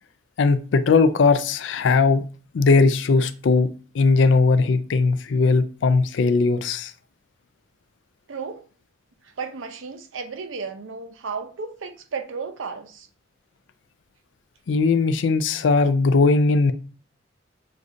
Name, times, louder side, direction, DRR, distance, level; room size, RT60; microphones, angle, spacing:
voice 1, 0.4-2.2 2.5-3.7 3.9-6.9 14.7-16.7, left 4 dB, 70° left, 0.4 m, -19 dB
voice 2, 8.3-8.6 9.4-13.1, right 5 dB, 90° right, 0.6 m, -33 dB
6.4 x 2.4 x 2.6 m
head